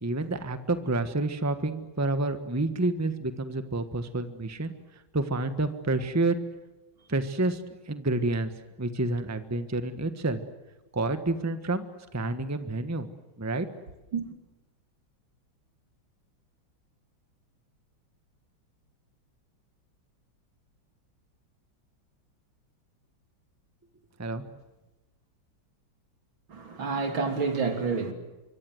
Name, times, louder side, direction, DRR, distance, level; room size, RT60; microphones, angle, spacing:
voice 1, 0.0-4.7 5.1-6.4 7.1-7.6 7.9-8.5 8.8-10.4 10.9-11.9 12.1-13.1 13.4-13.7 24.2-24.4, right 2 dB, 10° right, 10 dB, 1.2 m, -29 dB
voice 2, 26.5-28.1, right 4 dB, 75° right, 6 dB, 3.8 m, -29 dB
25.0 x 24.0 x 8.0 m, 1.1 s
omnidirectional pair, 2.2 m